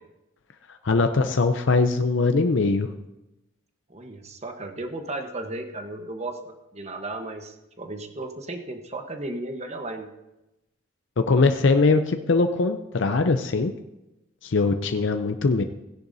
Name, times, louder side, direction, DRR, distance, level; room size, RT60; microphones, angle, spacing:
voice 1, 0.8-2.9 11.2-13.7 14.4-15.6, left 3 dB, 70° left, 6 dB, 0.6 m, -21 dB
voice 2, 3.9-10.1, right 2 dB, 35° right, 5 dB, 1.0 m, -35 dB
16.5 x 10.5 x 2.7 m, 0.95 s
head